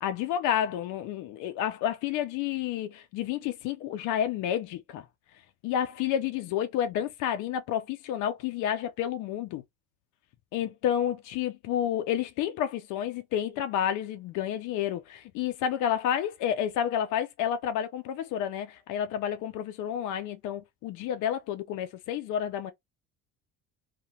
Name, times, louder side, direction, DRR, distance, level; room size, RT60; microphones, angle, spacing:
voice 1, 0.0-5.0 5.6-9.6 10.5-22.7, left 10 dB, 75° left, 0.5 m, -30 dB
2.8 x 2.1 x 2.7 m
cardioid pair, 140°, 31 cm